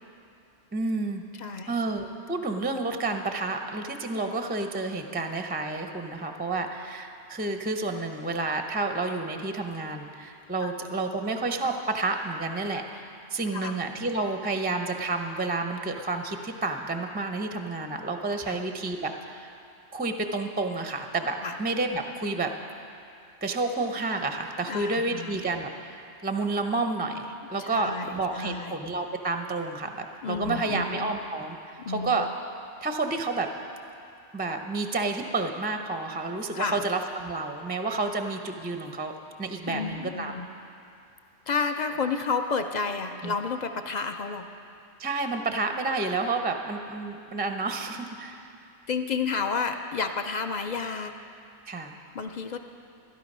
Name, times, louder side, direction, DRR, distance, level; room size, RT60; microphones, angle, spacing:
voice 1, 0.7-1.2 1.7-19.5 19.9-22.5 23.4-32.3 32.8-33.5 34.3-39.1 39.4-40.3 43.2-43.3 45.0-48.5 51.7-52.0, right 3 dB, 15° right, 5 dB, 0.4 m, -30 dB
voice 2, 1.4-1.8 10.6-10.7 13.5-13.7 18.4-18.6 21.4-21.6 24.7-25.4 27.6-28.1 28.3-28.8 30.2-31.1 31.8-32.1 36.5-36.9 39.7-40.5 41.5-44.5 48.9-51.1 52.1-52.6, left 5 dB, 55° left, 7 dB, 0.5 m, -31 dB
13.0 x 12.0 x 5.4 m, 2.6 s
omnidirectional pair, 1.3 m